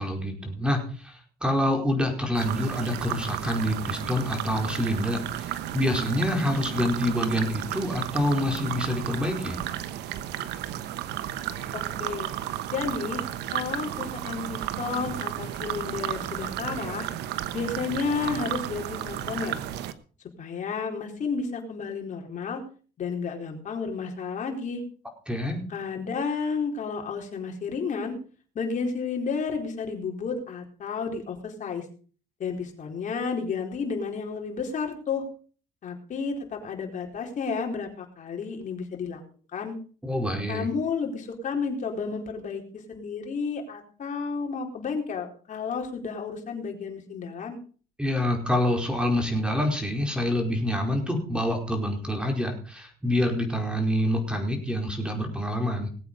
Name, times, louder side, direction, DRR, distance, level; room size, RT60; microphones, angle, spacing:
voice 1, 0.0-9.6 25.3-25.6 40.0-40.7 48.0-55.9, left 1 dB, 5° right, 3 dB, 4.7 m, -27 dB
sound 1, 2.3-19.9, right 12 dB, 80° right, 1.1 m, -33 dB
voice 2, 11.7-12.3 12.7-13.2 13.5-17.1 17.5-19.6 20.4-22.6 23.0-24.8 25.7-28.2 28.5-31.8 32.4-35.2 35.8-39.2 39.5-39.7 40.5-47.6, left 5 dB, 50° left, 2 dB, 4.3 m, -31 dB
19.5 x 8.4 x 5.4 m, 0.41 s
cardioid pair, 110°, 17 cm